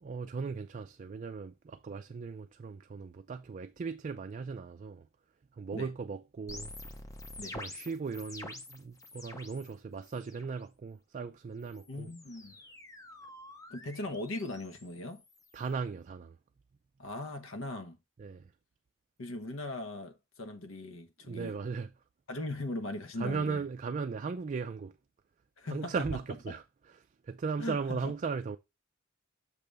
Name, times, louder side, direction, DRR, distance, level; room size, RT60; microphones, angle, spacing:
voice 1, 0.0-5.1 5.5-6.7 7.5-12.1 15.5-16.4 18.2-18.5 21.2-21.9 23.2-25.0 25.7-28.6, right 5 dB, 40° right, 0.4 m, -37 dB
sound 1, 6.5-9.7 10.0-10.6 11.6-15.7, left 2 dB, 15° left, 0.7 m, -48 dB
voice 2, 11.9-12.6 13.7-15.2 17.0-18.0 19.2-21.5 22.3-23.6 25.6-26.1 27.6-28.1, left 2 dB, 75° left, 0.9 m, -39 dB
6.7 x 3.4 x 5.2 m
head